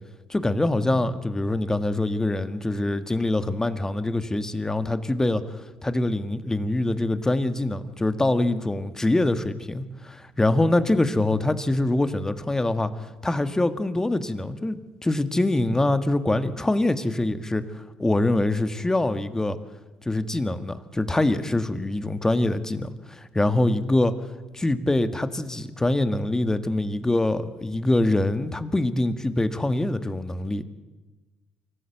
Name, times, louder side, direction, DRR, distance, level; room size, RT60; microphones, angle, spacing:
voice 1, 0.3-12.9 13.2-19.6 20.0-24.1 24.5-30.6, left 2 dB, 15° left, 11 dB, 1.7 m, -24 dB
25.0 x 14.5 x 7.9 m, 1.2 s
hypercardioid pair, 55°, 3 cm